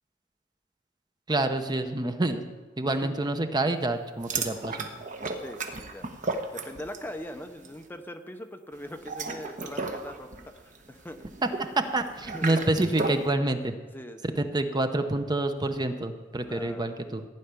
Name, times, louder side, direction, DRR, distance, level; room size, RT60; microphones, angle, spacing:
voice 1, 1.3-2.5 2.8-4.9 11.6-13.7 14.4-17.3, right 2 dB, 25° right, 7 dB, 0.8 m, -27 dB
sound 1, 4.2-7.1 7.4-7.7 8.9-13.3, right 3 dB, 45° right, 1.2 m, -34 dB
voice 2, 5.4-6.1 6.5-11.2 12.3-12.6 13.9-14.5 16.5-16.9, left 1 dB, 10° left, 6 dB, 0.7 m, -41 dB
15.0 x 5.7 x 9.6 m, 1.3 s
head